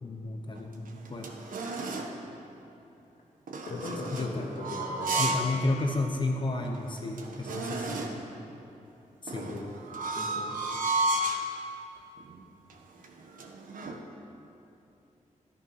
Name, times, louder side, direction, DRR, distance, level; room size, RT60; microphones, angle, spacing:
voice 1, 0.0-1.3 3.7-4.5 5.2-8.3 9.2-9.6, left 2 dB, 35° left, 2 dB, 1.0 m, -32 dB
sound 1, 0.5-2.2 3.5-5.5 5.9-6.0 6.6-6.7 6.9-8.3 9.3-11.5 12.2-12.4 12.7-14.0, right 2 dB, 90° right, 1.3 m, -33 dB
voice 2, 3.6-5.3 9.5-9.7 10.2-10.5, left 2 dB, 80° left, -4 dB, 2.9 m, -39 dB
13.5 x 12.5 x 5.9 m, 2.8 s
wide cardioid pair, 170°, 14 cm